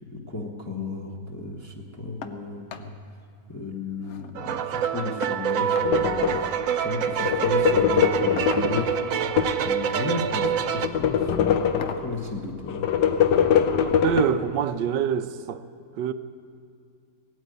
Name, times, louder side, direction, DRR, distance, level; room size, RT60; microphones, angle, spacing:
voice 1, 0.1-2.9 3.5-8.9 9.6-12.8, left 3 dB, 15° left, 0.8 m, -34 dB
sound 1, 2.2-2.4 2.7-2.9 3.3-3.4 3.7-4.3 5.2-6.0 7.2-7.4 8.4-9.0 10.1-10.4 10.8-11.0 11.8-12.1 13.4-13.5 14.0-14.1, left 6 dB, 55° left, 0.8 m, -39 dB
sound 2, 4.4-10.9, right 8 dB, 65° right, 0.9 m, -26 dB
sound 3, 5.8-6.6 7.1-9.7 10.2-12.2 12.7-14.3, left 8 dB, 80° left, 1.4 m, -23 dB
voice 2, 14.0-15.6 16.0-16.1, right 9 dB, 85° right, 1.3 m, -25 dB
17.5 x 9.3 x 8.0 m
omnidirectional pair, 1.9 m